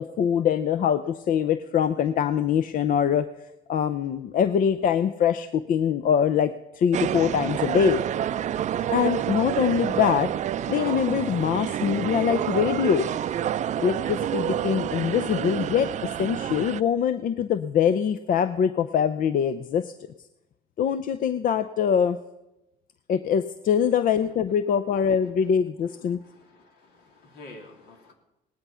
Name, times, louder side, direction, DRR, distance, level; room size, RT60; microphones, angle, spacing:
voice 1, 0.0-8.0 8.9-10.3 10.7-13.1 13.8-19.9 20.8-22.2 23.1-26.2, left 8 dB, 55° left, 12 dB, 0.6 m, -23 dB
sound 1, 6.9-16.8, right 10 dB, 45° right, 0.4 m, -28 dB
voice 2, 26.2-28.1, left 2 dB, 75° left, 2 dB, 3.3 m, -48 dB
18.0 x 10.5 x 5.6 m, 0.95 s
cardioid pair, 110°, 17 cm